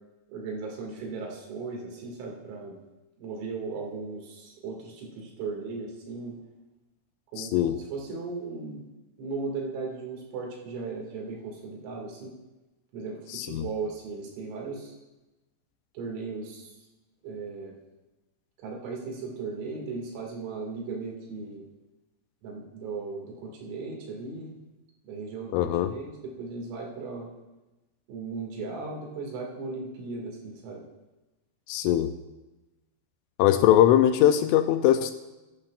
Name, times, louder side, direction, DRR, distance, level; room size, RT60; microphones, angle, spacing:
voice 1, 0.3-2.8 3.2-6.3 7.3-8.8 9.2-12.3 12.9-14.9 15.9-16.7 17.2-17.7 18.6-21.6 22.4-24.6 25.0-27.3 28.1-30.8, right 4 dB, 85° right, -1 dB, 4.9 m, -37 dB
voice 2, 7.4-7.8 13.3-13.7 25.5-25.9 31.7-32.1 33.4-35.1, left 11 dB, 85° left, 9 dB, 2.9 m, -21 dB
15.0 x 11.5 x 2.4 m, 1.0 s
omnidirectional pair, 5.8 m